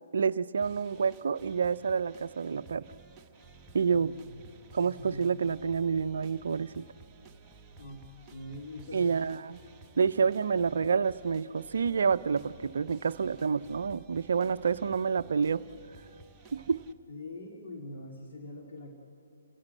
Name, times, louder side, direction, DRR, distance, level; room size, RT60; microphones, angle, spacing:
voice 1, 0.1-2.9 3.7-4.1 4.7-6.9 8.9-9.6 10.0-15.6 16.5-16.8, right 6 dB, 60° right, 15 dB, 0.5 m, -28 dB
sound 1, 0.6-16.9, right 4 dB, 15° right, 1.0 m, -54 dB
voice 2, 3.9-4.4 4.8-5.4 7.8-9.2 13.7-13.9 17.1-18.9, left 1 dB, 50° left, 0 dB, 2.3 m, -44 dB
29.0 x 15.5 x 7.7 m, 2.8 s
figure-of-eight pair, 135°, 0 cm